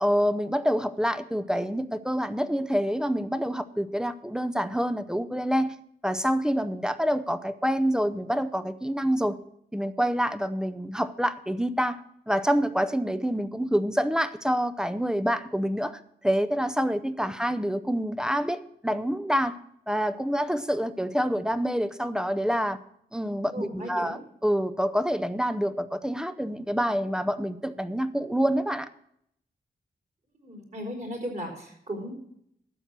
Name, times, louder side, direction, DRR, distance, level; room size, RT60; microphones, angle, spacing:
voice 1, 0.0-5.8 6.0-9.4 9.7-12.0 12.3-19.6 19.9-22.8 23.1-28.9, equal, 5° right, 11 dB, 0.6 m, -27 dB
voice 2, 23.5-24.2 30.4-32.1, equal, 45° right, 1 dB, 4.3 m, -36 dB
12.5 x 8.0 x 6.0 m, 0.72 s
wide cardioid pair, 110°, 17 cm